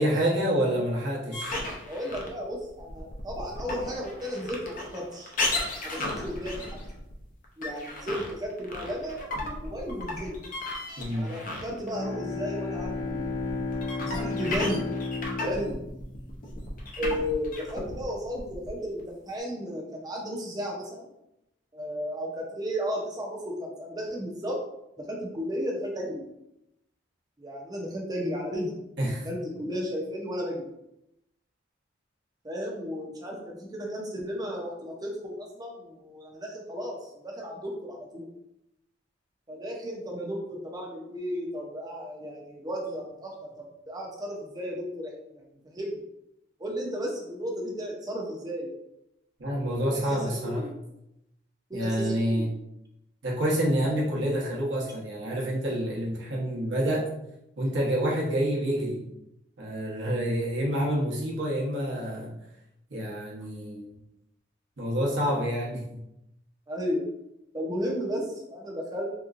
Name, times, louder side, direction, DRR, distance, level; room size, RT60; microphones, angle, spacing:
voice 1, 0.0-1.6 11.0-11.3 29.0-29.3 49.4-50.7 51.7-52.5 53.2-57.1 57.6-59.0 59.6-62.3 62.9-64.0 64.8-66.0, equal, 75° right, -4 dB, 1.0 m, -28 dB
sound 1, 1.3-12.0 12.3-19.1, left 2 dB, 45° left, 0.6 m, -35 dB
voice 2, 1.9-5.4 5.8-6.6 7.6-10.4 11.1-13.2 14.0-14.9 15.4-15.8 17.0-21.1 21.7-24.6 25.0-26.2 27.4-28.8 29.2-30.7 32.4-38.3 39.5-46.0 46.6-48.8 49.8-50.7 51.7-52.5 66.7-67.0 67.5-69.1, equal, 20° right, -1 dB, 0.6 m, -34 dB
Bowed string instrument, 11.8-16.9, left 3 dB, 70° left, 1.0 m, -33 dB
3.5 x 3.0 x 2.5 m, 0.84 s
head